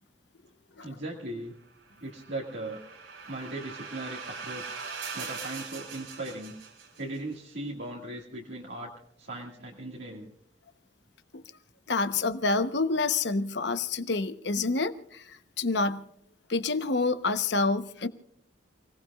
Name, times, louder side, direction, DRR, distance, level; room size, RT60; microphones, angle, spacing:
voice 1, 0.8-1.5 2.0-2.8 3.3-4.7 5.1-6.5 7.0-8.9 9.2-10.3, right 2 dB, 60° right, -2 dB, 2.0 m, -38 dB
sound 1, 1.9-7.2, right 5 dB, 80° right, 3.4 m, -41 dB
voice 2, 11.9-16.1 16.5-18.1, left 3 dB, 60° left, 10 dB, 0.9 m, -28 dB
29.5 x 18.5 x 2.4 m, 0.70 s
head